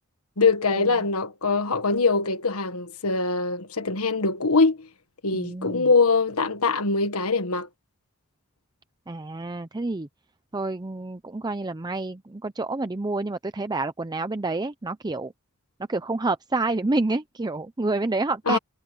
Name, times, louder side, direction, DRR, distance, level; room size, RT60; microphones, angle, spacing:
voice 1, 0.4-4.9 5.2-7.7 18.5-18.6, left 4 dB, 75° left, 1.6 m, -23 dB
voice 2, 5.3-5.9 9.1-10.1 10.5-15.3 15.9-18.6, right 2 dB, 20° right, 0.5 m, -28 dB
head